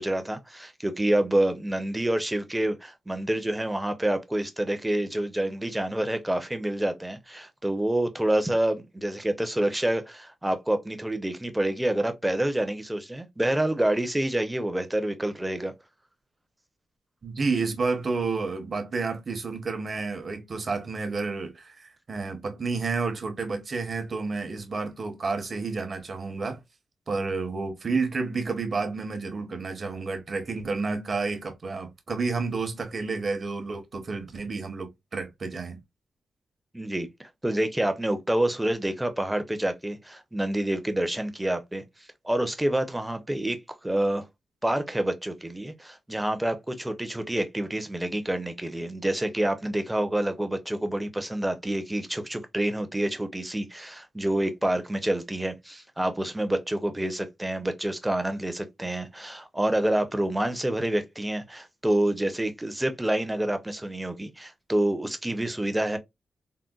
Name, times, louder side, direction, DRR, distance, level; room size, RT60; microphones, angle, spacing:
voice 1, 0.0-15.7 36.7-37.1 37.4-41.8 42.2-44.3 44.6-66.0, right 1 dB, 10° right, 0.5 m, -27 dB
voice 2, 17.2-26.6 27.1-35.8, right 4 dB, 40° right, 0.7 m, -30 dB
3.8 x 2.1 x 2.2 m
wide cardioid pair, 130°, 0 cm